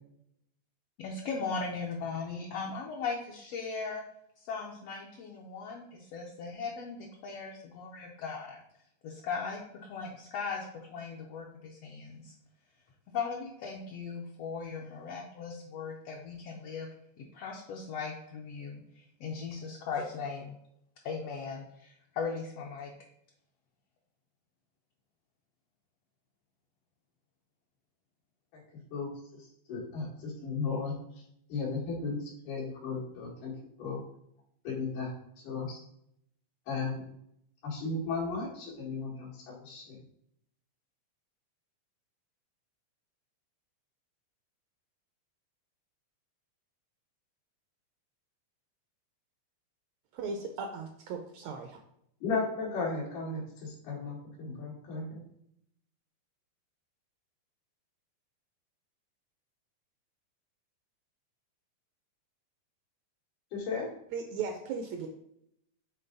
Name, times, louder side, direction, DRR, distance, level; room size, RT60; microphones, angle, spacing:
voice 1, 1.0-4.0 4.4-8.6 9.0-12.3 13.1-16.9 17.2-20.6 21.0-22.9, left 5 dB, 70° left, -2 dB, 1.5 m, -38 dB
voice 2, 28.9-30.9 31.5-33.5 33.8-34.0 34.7-35.1 35.4-35.8 36.7-37.0 37.6-40.0 52.2-55.2 63.5-63.9, left 4 dB, 90° left, -6 dB, 3.6 m, -35 dB
voice 3, 50.2-51.7 64.1-65.1, right 5 dB, 75° right, 4 dB, 1.7 m, -37 dB
7.7 x 3.7 x 4.0 m, 0.73 s
omnidirectional pair, 3.5 m